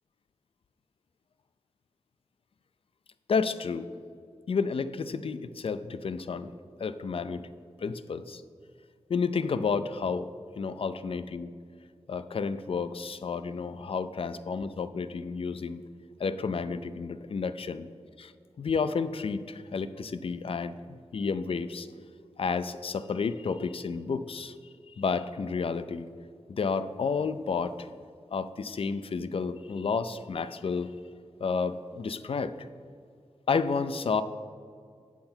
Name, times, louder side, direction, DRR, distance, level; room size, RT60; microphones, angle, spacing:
voice 1, 3.3-3.9 4.5-6.5 6.8-7.5 7.8-8.4 9.1-10.3 10.6-11.5 12.1-15.8 16.2-17.9 18.2-18.3 18.6-21.9 22.4-24.6 24.9-26.1 26.5-27.9 28.3-30.9 31.4-32.6 33.5-34.2, left 5 dB, 60° left, 13 dB, 0.4 m, -31 dB
8.6 x 5.7 x 4.4 m, 2.2 s
wide cardioid pair, 80°, 11 cm